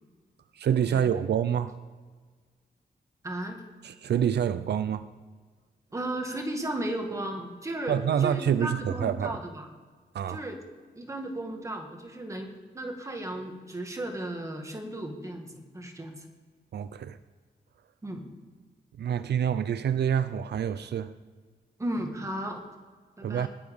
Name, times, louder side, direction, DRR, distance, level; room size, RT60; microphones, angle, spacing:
voice 1, 0.5-1.7 3.8-5.1 7.9-9.4 10.1-10.4 16.7-17.2 19.0-21.1 23.2-23.5, right 9 dB, 85° right, 0.5 m, -27 dB
voice 2, 3.2-3.6 5.9-9.7 10.3-10.6 10.9-16.2 18.0-18.2 21.8-22.6 23.2-23.5, right 1 dB, 20° right, 1.6 m, -35 dB
20.0 x 7.3 x 5.1 m
wide cardioid pair, 175°, 17 cm